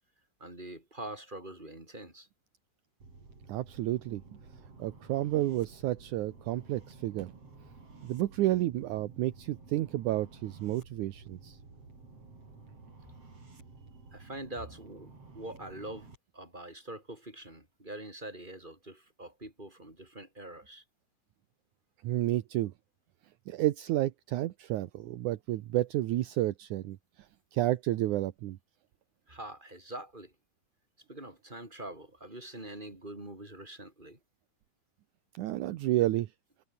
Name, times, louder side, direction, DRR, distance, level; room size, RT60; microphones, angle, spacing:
voice 1, 0.4-2.3 14.1-16.1 16.3-20.8 29.3-30.3 31.1-34.2, right 1 dB, 15° right, 7.3 m, -44 dB
sound 1, 3.0-16.2, right 3 dB, 45° right, 6.9 m, -53 dB
voice 2, 3.5-4.2 4.8-7.3 8.0-11.6 22.0-22.7 23.5-27.0 27.5-28.6 35.4-36.3, right 15 dB, 75° right, 2.3 m, -31 dB
omnidirectional pair, 3.7 m